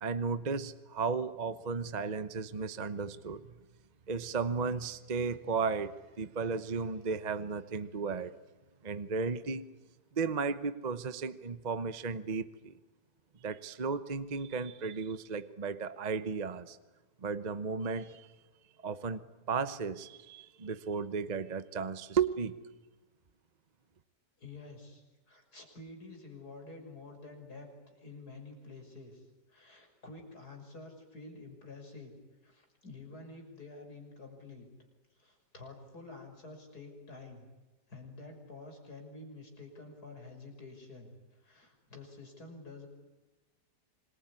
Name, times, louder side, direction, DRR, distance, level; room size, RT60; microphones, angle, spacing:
voice 1, 0.0-3.6 4.1-8.3 8.8-9.7 10.1-12.7 13.4-16.8 17.2-18.3 18.8-22.6, right 5 dB, 30° right, 12 dB, 0.9 m, -34 dB
voice 2, 24.4-32.1 32.4-34.7 35.2-37.5 37.9-42.9, left 3 dB, 60° left, 3 dB, 6.4 m, -49 dB
26.5 x 22.0 x 9.8 m, 1.1 s
omnidirectional pair, 1.8 m